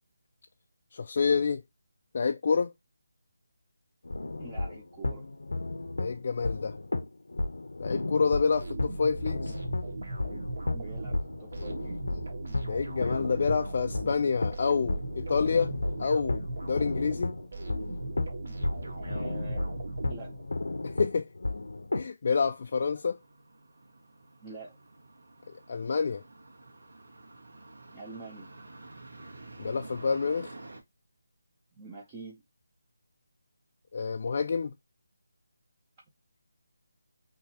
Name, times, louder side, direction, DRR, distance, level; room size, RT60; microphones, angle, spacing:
voice 1, 0.9-1.6 2.1-2.7 6.0-6.7 7.8-9.5 12.6-15.7 16.0-17.3 20.8-21.3 21.9-23.2 25.7-26.2 29.6-30.5 33.9-34.7, left 5 dB, 40° left, 0.3 m, -28 dB
sound 1, 4.0-22.1, left 2 dB, 80° left, 0.7 m, -34 dB
voice 2, 4.4-5.3 10.7-12.2 19.0-20.3 24.4-24.8 27.9-28.5 31.8-32.4, right 3 dB, 15° right, 0.6 m, -46 dB
sound 2, 8.5-20.7, right 2 dB, 60° right, 1.5 m, -38 dB
sound 3, 22.3-30.8, right 2 dB, 85° right, 1.6 m, -50 dB
4.6 x 3.1 x 2.8 m
figure-of-eight pair, 170°, 0 cm